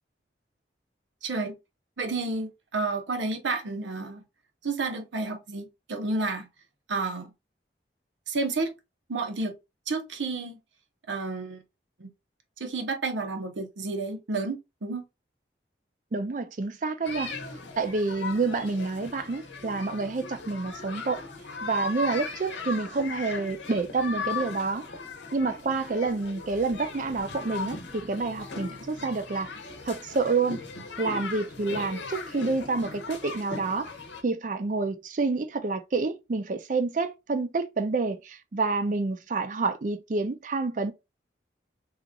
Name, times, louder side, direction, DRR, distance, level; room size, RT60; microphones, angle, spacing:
voice 1, 1.2-1.6 2.0-4.2 4.6-6.5 6.9-7.3 8.3-8.7 9.1-9.5 9.9-10.6 11.1-11.6 12.0-12.1 12.6-15.0, right 3 dB, 90° right, 0.8 m, -31 dB
voice 2, 16.1-17.3 17.8-21.2 21.6-24.9 25.3-29.5 29.8-30.6 31.0-33.9 34.2-40.9, right 3 dB, 45° right, 0.4 m, -28 dB
sound 1, 17.0-34.2, left 4 dB, 80° left, 0.8 m, -38 dB
2.9 x 2.4 x 3.6 m
head